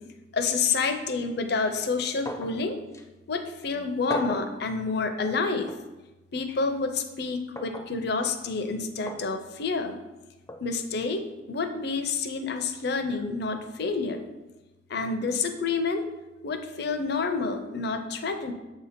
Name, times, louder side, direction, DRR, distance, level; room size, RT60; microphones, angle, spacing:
voice 1, 0.3-2.8 3.3-5.7 6.3-10.0 10.6-14.3 14.9-16.1 16.4-18.5, left 4 dB, 65° left, 7 dB, 0.6 m, -28 dB
sound 1, 2.3-2.6 2.9-3.0 4.1-4.5 5.7-5.8 7.6-7.9 9.1-9.3 10.5-10.6, left 1 dB, 15° left, 0.5 m, -35 dB
7.2 x 2.8 x 5.0 m, 1.1 s
head